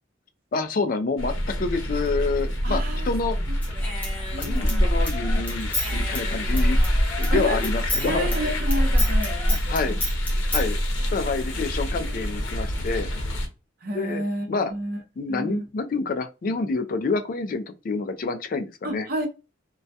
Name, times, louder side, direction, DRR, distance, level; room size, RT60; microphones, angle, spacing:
voice 1, 0.5-1.3 1.6-3.4 4.4-8.3 9.7-10.0 10.5-10.8 11.1-13.1 13.9-14.2 14.5-14.7 15.2-19.1, left 4 dB, 45° left, 0.3 m, -28 dB
sound 1, 1.2-13.5, equal, 80° left, 0.7 m, -28 dB
voice 2, 2.6-3.1 3.5-3.6 4.3-4.9 7.3-7.7 8.0-10.0 13.8-15.0 15.3-15.7 18.8-19.3, right 1 dB, 50° right, 0.6 m, -31 dB
Human voice / Scissors, 3.6-7.4 7.6-10.7, equal, 10° left, 0.6 m, -24 dB
2.2 x 2.1 x 2.6 m
head